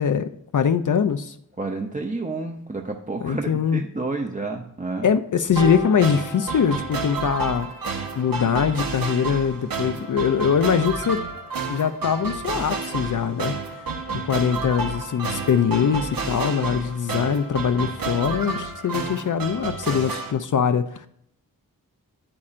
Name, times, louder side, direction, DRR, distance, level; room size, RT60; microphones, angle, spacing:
voice 1, 0.0-1.4 3.2-3.8 5.0-7.7 8.2-11.2 11.7-13.5 14.2-21.1, left 7 dB, 55° left, 10 dB, 0.5 m, -22 dB
voice 2, 1.6-5.1, right 3 dB, 20° right, 2 dB, 0.7 m, -30 dB
sound 1, 5.6-8.0 9.1-9.2, right 1 dB, 80° left, 1.8 m, -34 dB
sound 2, 5.6-20.3, right 4 dB, 70° right, 1.0 m, -30 dB
8.6 x 8.5 x 2.5 m, 0.71 s
cardioid pair, 55°, 37 cm